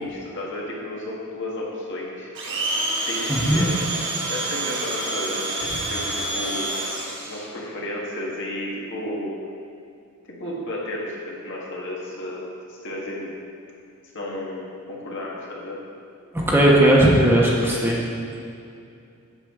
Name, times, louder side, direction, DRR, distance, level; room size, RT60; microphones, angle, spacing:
voice 1, 0.0-2.3 3.0-3.7 4.3-6.7 7.3-9.4 10.4-13.3 14.1-15.8, left 1 dB, 60° left, -4 dB, 1.6 m, -32 dB
Domestic sounds home sounds, 2.3-7.4, right 2 dB, 60° right, 1.3 m, -28 dB
voice 2, 3.3-3.6 16.3-18.0, right 1 dB, 10° right, -4 dB, 1.1 m, -17 dB
8.0 x 7.5 x 3.7 m, 2.5 s
head